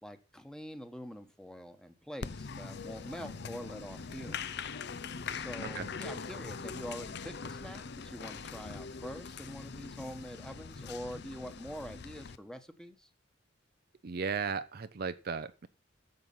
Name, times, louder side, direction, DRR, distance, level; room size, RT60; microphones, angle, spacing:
voice 1, 0.0-4.6 5.3-13.1, equal, 5° left, 1.2 m, -45 dB
Applause, 2.2-12.4, left 5 dB, 60° left, 0.7 m, -42 dB
voice 2, 14.0-15.7, right 5 dB, 50° right, 0.6 m, -35 dB
11.0 x 7.3 x 5.5 m
head